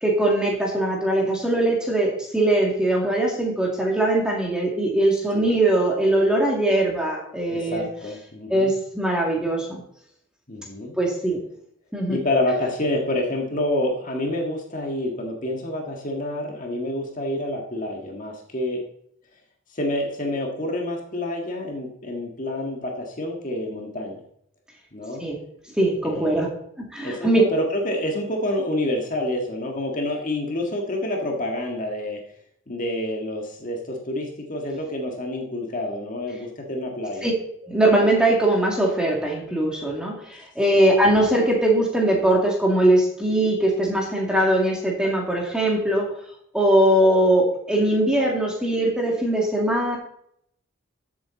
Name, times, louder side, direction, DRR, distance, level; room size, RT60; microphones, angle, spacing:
voice 1, 0.0-7.9 8.5-9.8 11.0-11.4 11.9-12.2 25.2-25.4 25.8-26.5 26.9-27.4 37.2-37.3 37.6-46.1 46.5-50.0, right 1 dB, 5° right, -1 dB, 2.3 m, -21 dB
voice 2, 7.5-8.7 10.5-10.9 12.1-18.8 19.7-24.2 24.9-25.3 26.0-26.4 27.0-32.2 32.7-37.3 40.7-40.9, left 1 dB, 40° left, 1 dB, 1.7 m, -28 dB
14.0 x 7.9 x 4.0 m, 0.72 s
head